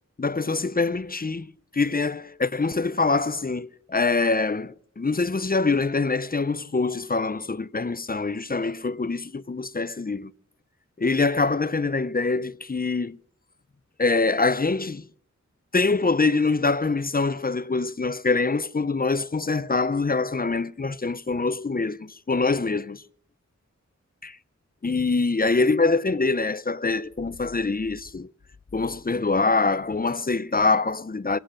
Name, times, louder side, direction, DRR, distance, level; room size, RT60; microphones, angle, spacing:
voice 1, 0.2-10.3 11.0-13.2 14.0-15.1 15.7-23.0 24.2-24.4 24.8-28.3 28.7-31.4, left 3 dB, 30° left, 0.6 m, -24 dB
24.0 x 9.0 x 6.2 m
wide cardioid pair, 55°, 30 cm